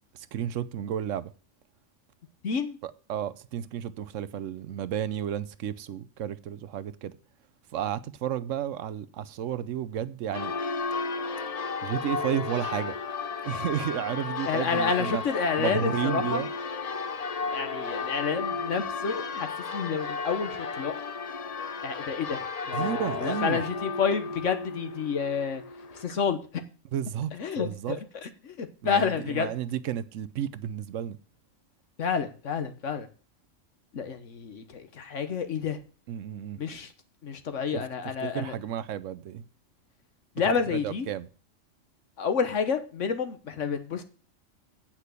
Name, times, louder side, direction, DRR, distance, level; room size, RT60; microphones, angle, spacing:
voice 1, 0.1-1.3 2.8-7.1 7.7-10.5 11.8-12.9 13.4-15.2 15.6-16.5 22.7-23.6 26.9-27.3 27.6-28.0 28.8-31.2 36.1-36.6 37.7-37.8 38.2-39.5 40.7-41.3, right 10 dB, 80° right, 1.0 m, -32 dB
voice 2, 2.4-2.8 14.5-16.4 17.5-20.9 21.8-25.6 26.0-26.4 27.3-29.5 32.0-33.1 33.9-35.8 36.6-36.9 37.2-38.6 40.3-41.1 42.2-44.0, left 6 dB, 70° left, 1.5 m, -29 dB
Church bell, 10.3-26.1, left 4 dB, 40° left, 0.7 m, -33 dB
8.4 x 6.0 x 8.1 m
omnidirectional pair, 1.3 m